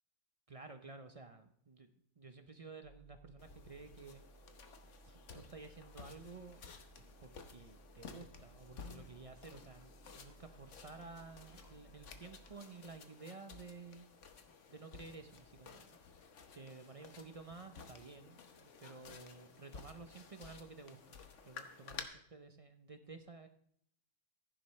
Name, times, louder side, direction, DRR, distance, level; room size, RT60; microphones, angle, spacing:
voice 1, 0.5-1.9 2.2-4.2 5.0-6.6 7.0-14.1 14.7-16.0 16.5-21.2 21.4-23.5, right 4 dB, 35° right, 7 dB, 0.6 m, -53 dB
sound 1, 2.8-12.6, right 3 dB, 80° right, 1.9 m, -62 dB
sound 2, 3.4-22.0, left 5 dB, 70° left, 1.3 m, -54 dB
sound 3, 8.3-9.1 9.4-10.7 11.2-12.9, left 2 dB, 20° left, 1.6 m, -72 dB
15.0 x 10.0 x 3.2 m, 0.67 s
omnidirectional pair, 1.3 m